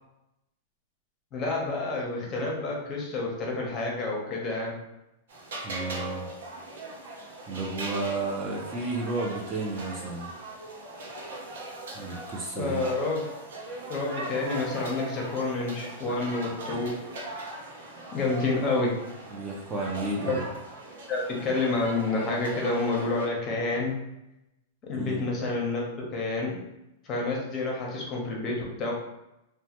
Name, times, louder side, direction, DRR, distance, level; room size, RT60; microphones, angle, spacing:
voice 1, 1.3-4.7 12.6-13.2 13.9-17.0 18.1-18.9 20.2-20.4 21.1-23.9 24.8-25.8 26.1-26.6 27.0-28.9, left 3 dB, 30° left, -2 dB, 0.7 m, -29 dB
sound 1, 5.3-23.3, right 2 dB, 80° right, 0.7 m, -40 dB
voice 2, 5.6-6.3 7.5-10.3 11.9-12.8 19.3-20.4 25.0-25.3, right 3 dB, 20° right, -2 dB, 0.4 m, -32 dB
3.0 x 2.1 x 2.9 m, 0.89 s
supercardioid pair, 150°, 0 cm